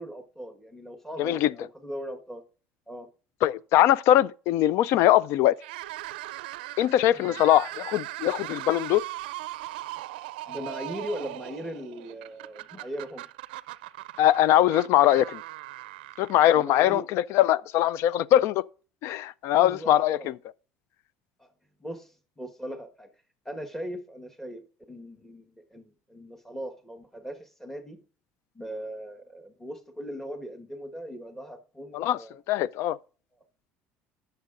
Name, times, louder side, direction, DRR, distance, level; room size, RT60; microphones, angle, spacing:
voice 1, 0.0-2.4 2.9-3.1 7.1-7.3 10.5-13.2 16.5-17.1 19.4-20.3 21.4-21.5 21.8-23.1 23.4-28.0 28.5-32.4, equal, 5° left, 1.5 m, -39 dB
voice 2, 1.2-1.5 3.4-5.6 6.8-9.0 14.2-15.4 16.2-18.6 19.0-20.3 31.9-32.2 32.5-33.0, left 12 dB, 65° left, 0.4 m, -22 dB
sound 1, 5.6-16.9, right 17 dB, 85° right, 0.4 m, -39 dB
15.5 x 6.7 x 2.6 m
supercardioid pair, 85°, 5 cm